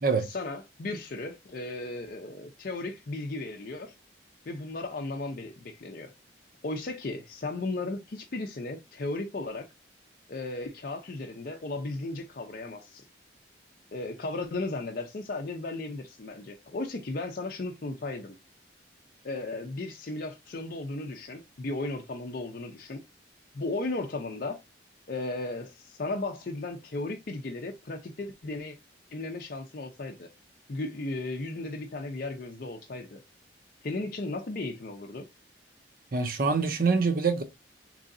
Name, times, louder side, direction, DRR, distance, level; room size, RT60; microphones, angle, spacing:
voice 1, 0.3-3.9 4.5-6.1 6.6-9.7 10.3-13.0 13.9-18.4 19.2-23.0 23.5-24.6 25.1-28.8 29.1-30.3 30.7-33.2 33.8-35.3, left 2 dB, 50° left, 0.5 m, -35 dB
voice 2, 36.1-37.4, right 4 dB, 50° right, 0.7 m, -25 dB
3.8 x 3.0 x 2.5 m
head